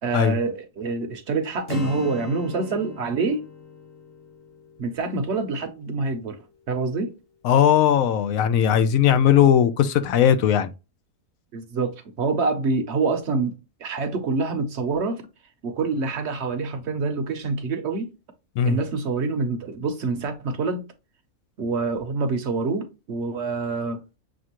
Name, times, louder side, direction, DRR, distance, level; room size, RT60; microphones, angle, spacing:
voice 1, 0.0-3.4 4.8-7.1 11.5-13.5 13.8-15.2 15.6-18.1 18.7-20.8 21.6-24.0, right 4 dB, 60° right, 0.9 m, -26 dB
Acoustic guitar, 1.7-5.6, left 4 dB, 45° left, 1.4 m, -38 dB
voice 2, 7.4-10.7 18.6-18.8, left 9 dB, 80° left, 1.0 m, -18 dB
6.4 x 2.4 x 2.9 m
omnidirectional pair, 1.4 m